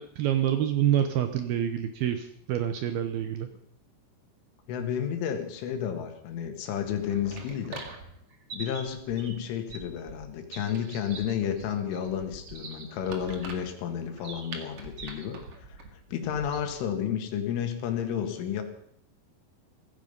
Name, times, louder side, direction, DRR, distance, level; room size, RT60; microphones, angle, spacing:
voice 1, 0.0-3.5, right 10 dB, 75° right, 8 dB, 2.4 m, -27 dB
voice 2, 4.7-7.8 8.5-15.4 15.7-18.6, left 9 dB, 90° left, 6 dB, 4.4 m, -31 dB
sound 1, 6.7-16.9, right 3 dB, 45° right, 2.1 m, -44 dB
16.5 x 15.5 x 5.4 m, 0.70 s
omnidirectional pair, 5.4 m